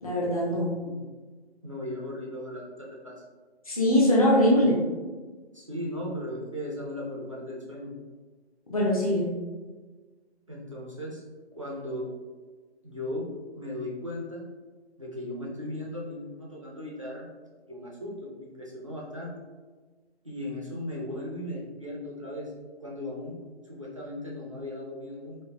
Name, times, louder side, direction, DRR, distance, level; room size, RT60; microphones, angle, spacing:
voice 1, 0.0-0.7 3.7-4.7 8.7-9.3, left 1 dB, 35° left, -4 dB, 0.6 m, -22 dB
voice 2, 1.6-3.2 4.5-4.7 5.5-7.9 10.5-11.2 11.6-12.1 12.8-13.3 13.5-14.5 15.0-17.3 17.7-19.3 20.2-22.5 22.8-23.4 23.6-25.4, left 1 dB, 30° right, -4 dB, 0.5 m, -37 dB
5.1 x 2.1 x 2.3 m, 1.4 s
hypercardioid pair, 170°, 34 cm